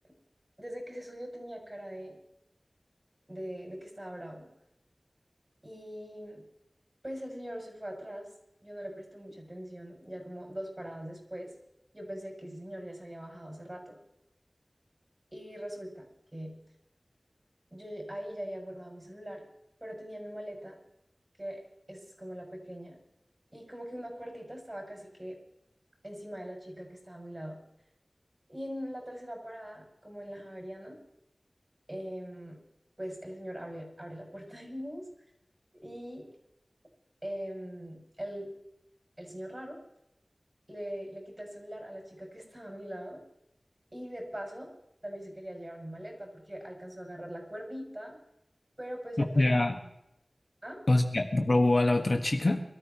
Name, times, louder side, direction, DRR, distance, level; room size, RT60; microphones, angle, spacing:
voice 1, 0.6-2.2 3.3-4.5 5.6-6.4 7.0-8.3 8.6-11.5 11.9-14.0 15.3-16.1 16.3-16.5 17.7-19.4 19.8-20.8 21.4-21.6 21.9-23.0 23.5-25.4 26.0-27.6 28.5-31.0 31.9-32.6 33.0-35.0 35.7-36.3 37.2-38.5 39.2-39.8 40.7-43.2 43.9-44.7 45.0-48.2 48.8-49.6 50.6-50.8, equal, 30° right, 0 dB, 7.6 m, -41 dB
voice 2, 49.2-49.8 50.9-52.6, left 2 dB, 55° left, 3 dB, 1.5 m, -24 dB
26.0 x 13.5 x 3.1 m, 0.81 s
wide cardioid pair, 55°, 0 cm